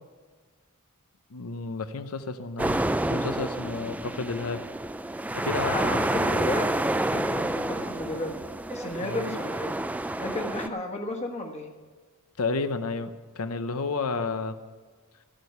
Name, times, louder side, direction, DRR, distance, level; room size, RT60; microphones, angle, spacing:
voice 1, 1.3-2.8 3.1-4.6 5.3-6.0 9.0-9.2 12.4-13.1 13.4-14.6, left 4 dB, 75° left, 11 dB, 0.8 m, -31 dB
sound 1, 2.6-10.7, right 1 dB, 5° right, 0.3 m, -29 dB
voice 2, 5.6-8.4 8.7-9.7 10.2-11.7, left 1 dB, 30° left, 2 dB, 1.4 m, -33 dB
14.0 x 9.0 x 6.6 m, 1.5 s
head